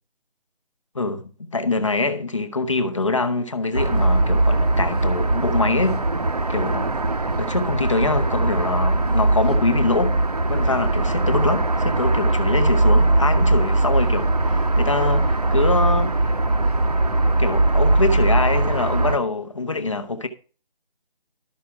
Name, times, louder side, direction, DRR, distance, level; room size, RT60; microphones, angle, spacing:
voice 1, 0.9-6.0 6.5-6.9 7.4-10.2 10.5-16.3 17.4-20.3, left 3 dB, 35° left, 0.9 m, -24 dB
sound 1, 3.7-19.2, right 2 dB, 45° right, 0.8 m, -20 dB
13.0 x 5.9 x 4.7 m
figure-of-eight pair, 175°, 29 cm